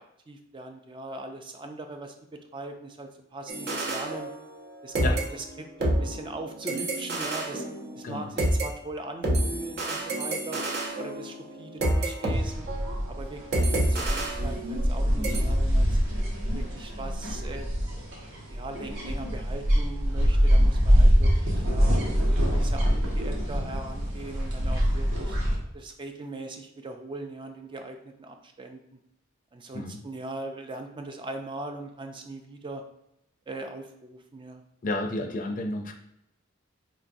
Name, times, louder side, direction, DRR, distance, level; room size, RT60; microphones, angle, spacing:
voice 1, 0.0-4.3 4.8-7.6 7.9-10.6 11.0-12.7 13.1-15.9 16.5-17.7 18.5-22.0 22.4-25.4 25.7-28.8 29.5-32.8 33.5-34.6, right 2 dB, 25° right, 5 dB, 0.4 m, -40 dB
sound 1, 3.5-4.7 4.9-8.7 9.2-12.3 12.7-12.9 13.5-14.9 15.2-15.4, right 1 dB, 60° right, 0.7 m, -29 dB
sound 2, 12.3-25.5, equal, 85° right, 1.2 m, -24 dB
voice 2, 34.8-35.9, left 2 dB, 45° left, 4 dB, 0.5 m, -31 dB
4.7 x 2.9 x 2.6 m, 0.79 s
head